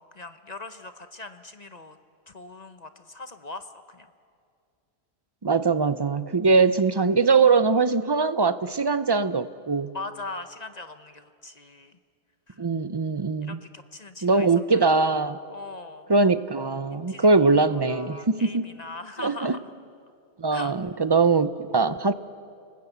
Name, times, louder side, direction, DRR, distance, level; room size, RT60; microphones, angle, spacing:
voice 1, 0.0-2.0 2.3-4.1 9.9-12.0 12.5-12.6 13.4-14.5 15.5-16.1 16.9-17.5 17.9-19.7 20.5-20.7, left 2 dB, 35° left, 9 dB, 0.9 m, -40 dB
voice 2, 5.4-9.9 12.6-13.6 14.2-15.4 16.1-18.6 19.2-19.6 20.4-22.1, right 4 dB, 30° right, 13 dB, 0.5 m, -22 dB
30.0 x 19.5 x 8.1 m, 2.3 s
omnidirectional pair, 1.3 m